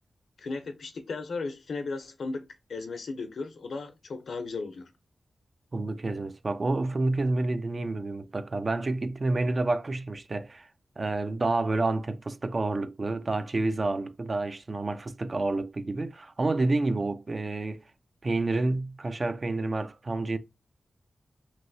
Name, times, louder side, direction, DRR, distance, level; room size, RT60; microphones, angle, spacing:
voice 1, 0.4-2.4 2.7-4.9, left 3 dB, 75° left, 0.6 m, -35 dB
voice 2, 5.7-10.7 11.0-17.8 18.2-20.4, right 2 dB, 40° right, 0.4 m, -29 dB
3.0 x 2.7 x 2.6 m
wide cardioid pair, 85°, 0 cm